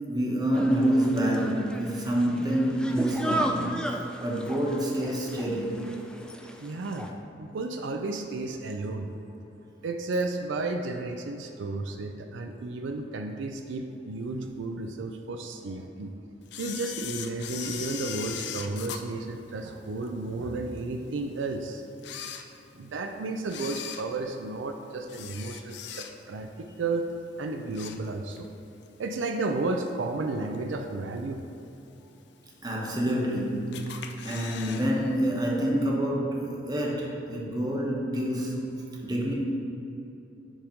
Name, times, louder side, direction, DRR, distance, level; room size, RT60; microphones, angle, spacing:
voice 1, 0.1-3.7 4.2-5.8 32.6-39.3, right 1 dB, 20° right, -3 dB, 1.0 m, -27 dB
sound 1, 0.5-7.1, equal, 5° left, 0.3 m, -35 dB
voice 2, 6.6-7.1 7.4-9.1 9.8-16.1 16.6-21.8 22.7-27.1 27.4-28.5 29.0-31.4, right 3 dB, 80° right, 4 dB, 0.4 m, -33 dB
Camera, 16.5-20.1 20.6-20.7 21.4-21.5 21.9-23.0 23.4-26.4 26.8-27.1 27.4-28.5 28.8-28.9 29.9-30.0 30.5-30.9 31.4-31.5 31.7-31.8 31.9-32.0 32.8-33.3 33.7-34.9 35.1-35.2 35.5-35.6, left 8 dB, 65° left, 0.4 m, -39 dB
7.2 x 3.6 x 5.1 m, 2.9 s
head